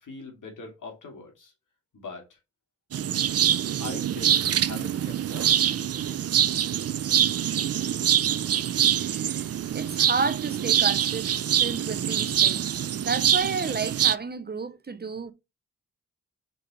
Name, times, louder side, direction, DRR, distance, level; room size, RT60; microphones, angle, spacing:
voice 1, 0.0-1.5 1.9-2.4 3.8-6.3, left 4 dB, 80° left, 2.6 m, -42 dB
sound 1, 2.9-14.1, right 10 dB, 50° right, 0.5 m, -24 dB
voice 2, 9.0-9.5 9.7-15.3, right 4 dB, 30° right, 0.8 m, -31 dB
5.3 x 4.2 x 5.0 m
cardioid pair, 75°, 31 cm